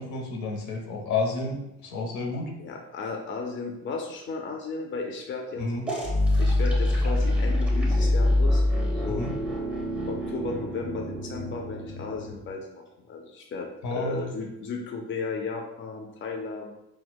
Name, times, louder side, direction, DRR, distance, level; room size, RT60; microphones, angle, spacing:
voice 1, 0.0-1.6 1.8-2.5 5.6-5.9 9.2-9.3 13.8-14.3, left 3 dB, 75° left, 1 dB, 0.8 m, -30 dB
voice 2, 2.6-5.6 6.4-8.6 8.9-9.3 10.1-16.7, left 4 dB, 40° left, 2 dB, 0.5 m, -35 dB
sound 1, 5.9-12.5, left 1 dB, 5° right, 0.9 m, -25 dB
4.4 x 2.2 x 2.2 m, 0.86 s
cardioid pair, 90°, 30 cm